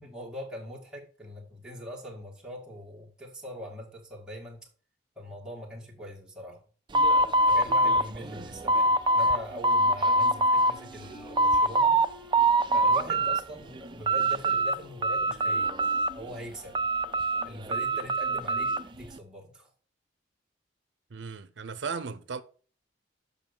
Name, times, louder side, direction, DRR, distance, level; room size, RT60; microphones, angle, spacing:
voice 1, 0.0-4.7 5.2-6.6 7.5-12.1 12.7-15.7 16.1-16.8 17.4-19.7, equal, 5° right, 2.1 m, -42 dB
sound 1, 6.9-9.4 9.6-10.7 11.1-12.1 12.3-13.4 13.8-14.7 15.0-16.3 16.7-18.8, right 1 dB, 25° right, 0.4 m, -24 dB
Wind instrument woodwind instrument, 8.3-13.9, right 6 dB, 35° left, 3.5 m, -53 dB
sound 2, 10.2-18.3, equal, 85° left, 3.4 m, -53 dB
voice 2, 21.1-22.4, right 5 dB, 80° right, 0.6 m, -36 dB
7.4 x 5.6 x 5.4 m
head